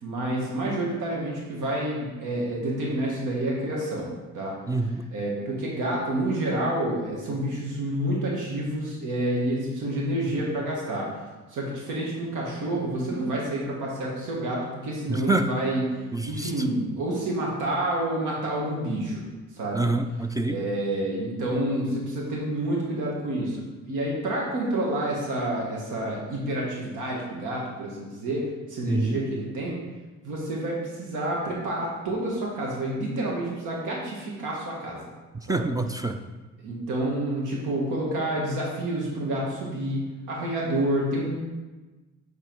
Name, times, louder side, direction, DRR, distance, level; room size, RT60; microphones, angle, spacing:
voice 1, 0.0-4.1 4.3-4.5 4.8-11.1 11.5-15.8 16.2-19.2 19.5-19.9 20.4-23.6 23.9-29.8 30.2-35.1 35.5-35.6 36.6-40.0 40.3-41.4, right 1 dB, 85° right, -3 dB, 1.4 m, -28 dB
voice 2, 4.7-5.1 15.1-15.5 16.1-16.5 19.7-20.6 28.8-29.2 35.3-36.2, right 2 dB, 10° right, 7 dB, 0.3 m, -26 dB
7.2 x 3.4 x 4.5 m, 1.2 s
cardioid pair, 90°, 30 cm